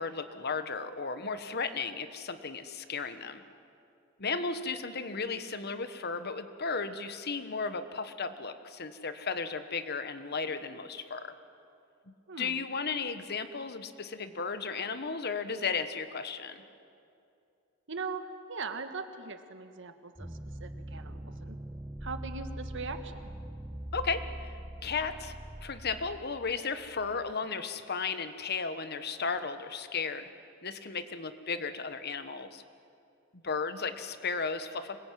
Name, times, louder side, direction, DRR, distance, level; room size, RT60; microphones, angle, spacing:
voice 1, 0.0-3.4 4.2-11.3 12.1-16.6 23.9-30.3 30.6-32.6 33.4-35.0, left 5 dB, 50° left, 11 dB, 1.3 m, -35 dB
voice 2, 12.3-12.6 17.9-20.3 20.6-21.6 22.0-23.3, right 4 dB, 65° right, 8 dB, 1.7 m, -40 dB
sound 1, 20.2-27.3, right 1 dB, 10° right, 0.7 m, -43 dB
26.0 x 21.0 x 9.3 m, 2.6 s
head